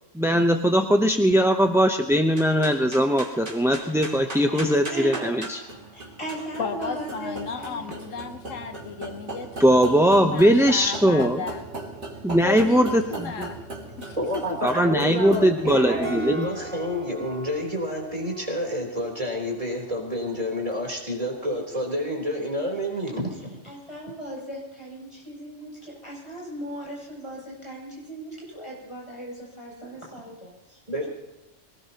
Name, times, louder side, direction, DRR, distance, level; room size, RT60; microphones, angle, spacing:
voice 1, 0.1-5.6 9.6-11.4 12.2-13.5 14.6-16.5, equal, 5° right, 4 dB, 0.6 m, -20 dB
sound 1, 2.3-21.8, right 2 dB, 65° right, 3.2 m, -39 dB
voice 2, 4.5-5.2 5.9-7.9 23.6-31.1, right 1 dB, 20° left, -3 dB, 7.7 m, -37 dB
voice 3, 6.6-11.7 12.4-13.6 14.0-14.6, left 6 dB, 85° left, 7 dB, 1.4 m, -34 dB
voice 4, 14.2-23.6 30.9-31.0, equal, 30° right, -1 dB, 3.8 m, -29 dB
22.5 x 19.0 x 2.9 m, 0.94 s
omnidirectional pair, 1.3 m